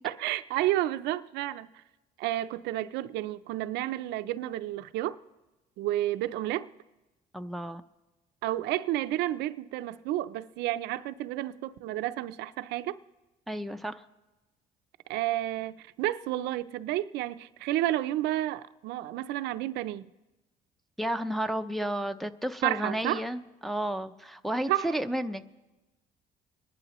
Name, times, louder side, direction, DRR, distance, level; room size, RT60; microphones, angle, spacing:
voice 1, 0.0-1.7 2.2-5.2 5.8-6.7 8.4-13.0 15.1-20.1 22.6-23.2 24.7-24.9, right 14 dB, 85° right, 0.5 m, -31 dB
voice 2, 7.3-7.8 13.5-14.0 21.0-25.5, right 1 dB, ahead, 0.5 m, -32 dB
26.0 x 11.0 x 3.0 m
cardioid pair, 110°, 17 cm